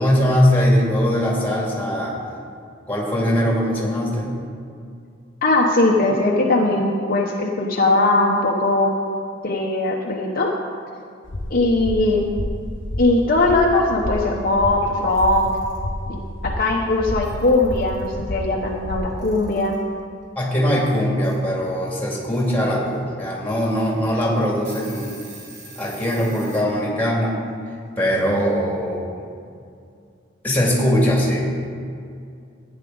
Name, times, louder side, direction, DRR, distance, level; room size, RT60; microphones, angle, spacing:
voice 1, 0.0-2.2 2.9-4.4 20.3-25.1 25.7-27.4 28.0-29.1 30.4-31.5, equal, 10° left, -4 dB, 2.5 m, -21 dB
voice 2, 5.4-9.0 9.4-10.5 11.5-12.2 13.0-15.5 16.1-19.7, left 2 dB, 50° left, -1 dB, 0.9 m, -19 dB
sound 1, 11.2-19.4, left 1 dB, 70° left, 1.1 m, -30 dB
Alarm / Clock, 15.0-15.8 16.9-17.0 17.2-18.1 19.2-19.8 21.2-21.3 22.1-22.5 22.9-23.0 23.5-23.6 24.1-24.2 24.5-26.7, right 2 dB, 40° right, 2.6 m, -44 dB
13.5 x 9.7 x 4.0 m, 2.4 s
head